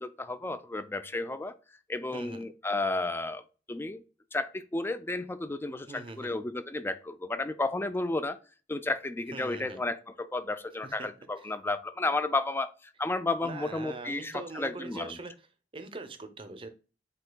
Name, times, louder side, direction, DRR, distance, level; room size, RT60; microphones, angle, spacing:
voice 1, 0.0-1.5 1.9-4.0 4.3-8.4 8.7-15.2, left 2 dB, 10° left, 11 dB, 0.3 m, -32 dB
voice 2, 2.1-2.4 5.9-6.3 9.3-9.8 10.8-11.1 11.4-11.5 13.4-15.4 15.7-16.7, right 3 dB, 30° right, 9 dB, 0.6 m, -42 dB
7.8 x 2.8 x 2.2 m, 0.34 s
head